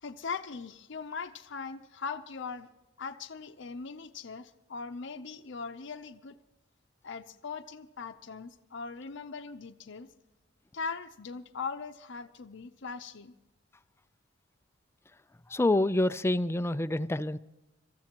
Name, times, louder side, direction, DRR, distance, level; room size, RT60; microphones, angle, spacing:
voice 1, 0.0-2.7 3.0-6.4 7.0-10.1 10.7-13.3, left 5 dB, 65° left, 0.7 m, -40 dB
voice 2, 15.5-17.4, left 2 dB, 15° left, 0.4 m, -27 dB
25.0 x 14.5 x 3.0 m
head